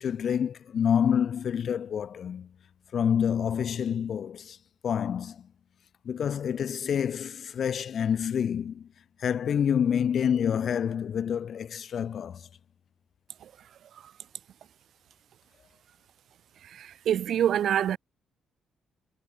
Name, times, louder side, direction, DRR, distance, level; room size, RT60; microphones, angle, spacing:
voice 1, 0.0-2.5 2.9-4.6 4.8-5.5 6.1-8.9 9.2-12.4, left 8 dB, 55° left, 1.7 m, -27 dB
voice 2, 16.7-18.0, right 10 dB, 65° right, 0.6 m, -26 dB
cardioid pair, 90°, 0 cm